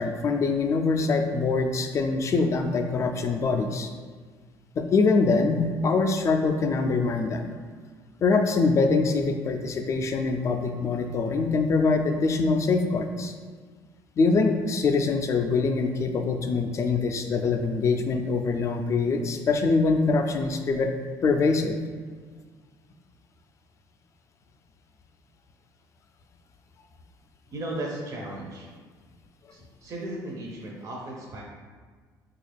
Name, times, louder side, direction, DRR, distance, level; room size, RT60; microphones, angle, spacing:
voice 1, 0.0-3.9 4.8-7.4 8.2-13.3 14.2-20.9 21.2-21.8, left 4 dB, 40° left, 6 dB, 0.3 m, -24 dB
voice 2, 27.5-28.7 29.5-31.4, right 1 dB, 45° right, -2 dB, 0.5 m, -35 dB
3.4 x 2.4 x 3.3 m, 1.5 s
cardioid pair, 95°, 8 cm